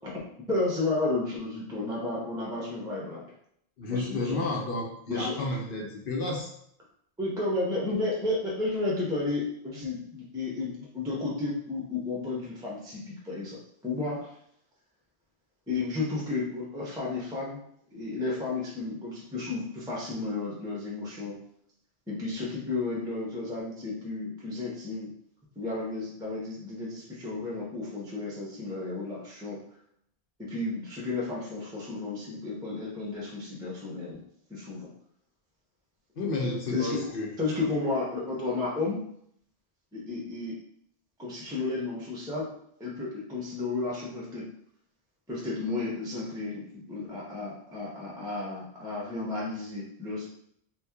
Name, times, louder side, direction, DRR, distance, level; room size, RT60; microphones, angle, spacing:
voice 1, 0.5-3.2 3.9-4.5 5.1-5.4 7.2-14.3 15.7-17.6 17.9-21.4 22.1-25.1 25.6-29.6 30.4-34.2 34.5-34.9 36.7-37.0 37.4-39.0 39.9-40.6 41.2-42.5 42.8-44.5 45.3-50.3, left 3 dB, 5° right, -4 dB, 0.6 m, -32 dB
voice 2, 3.8-6.5 36.2-37.3, left 2 dB, 65° left, -1 dB, 0.8 m, -31 dB
2.9 x 2.2 x 3.5 m, 0.70 s
omnidirectional pair, 1.0 m